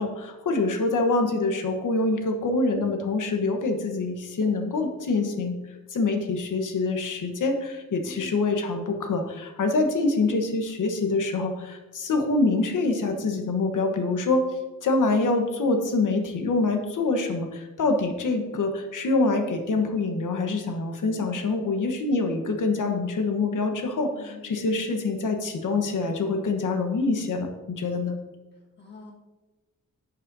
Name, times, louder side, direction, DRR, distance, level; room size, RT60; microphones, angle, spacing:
voice 1, 0.0-14.5 14.8-28.2, left 3 dB, 75° left, 5 dB, 1.2 m, -25 dB
voice 2, 8.0-8.5 24.1-24.9 28.8-29.1, left 2 dB, 35° left, -2 dB, 1.6 m, -45 dB
11.0 x 7.4 x 2.7 m, 1.1 s
wide cardioid pair, 175°, 31 cm